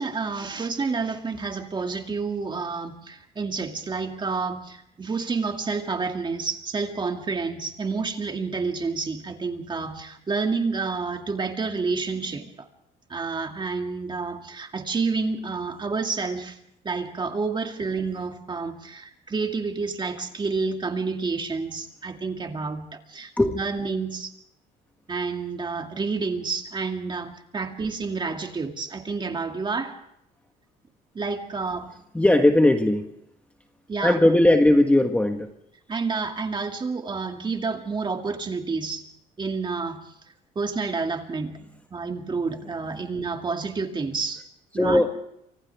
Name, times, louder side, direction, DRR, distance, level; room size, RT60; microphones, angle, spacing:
voice 1, 0.0-12.7 13.1-16.6 16.8-24.3 25.1-30.0 31.1-31.9 33.9-34.2 35.9-39.1 39.4-40.1 40.6-41.6 41.9-44.4 44.7-45.0, right 4 dB, 25° right, 4 dB, 2.3 m, -29 dB
voice 2, 32.1-33.1 34.0-35.5 44.8-45.1, left 1 dB, 10° left, 5 dB, 1.4 m, -18 dB
29.0 x 25.5 x 3.5 m, 0.74 s
cardioid pair, 110°, 17 cm